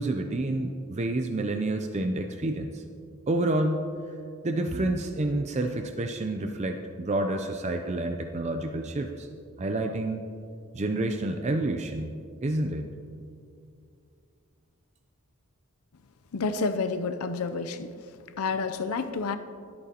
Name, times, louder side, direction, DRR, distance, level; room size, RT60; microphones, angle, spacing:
voice 1, 0.0-2.8 3.3-3.9 4.4-9.3 9.6-10.2 10.7-12.9, right 2 dB, 30° right, 5 dB, 0.5 m, -29 dB
voice 2, 16.3-17.9 18.4-19.4, left 4 dB, 85° left, 10 dB, 0.5 m, -29 dB
23.5 x 8.6 x 2.9 m, 2.4 s
head